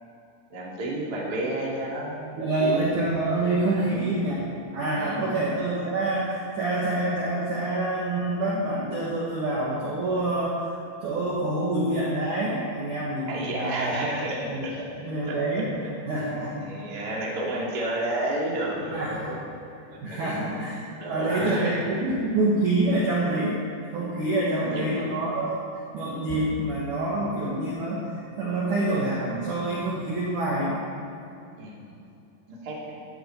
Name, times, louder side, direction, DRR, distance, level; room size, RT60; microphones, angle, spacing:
voice 1, 0.5-2.9 3.7-4.1 4.9-5.3 13.3-14.8 15.3-15.4 15.8-15.9 16.6-19.4 19.9-21.8 24.4-25.1 31.6-31.9 32.5-33.1, right 1 dB, 30° right, -4 dB, 2.0 m, -31 dB
voice 2, 2.3-4.4 4.7-10.7 11.0-14.2 14.5-14.7 15.0-15.7 16.1-16.7 18.9-19.3 20.0-20.8 21.1-23.6 23.9-25.6 25.9-30.8, right 2 dB, 55° right, -6 dB, 2.3 m, -27 dB
17.5 x 13.0 x 4.6 m, 2.7 s
omnidirectional pair, 5.9 m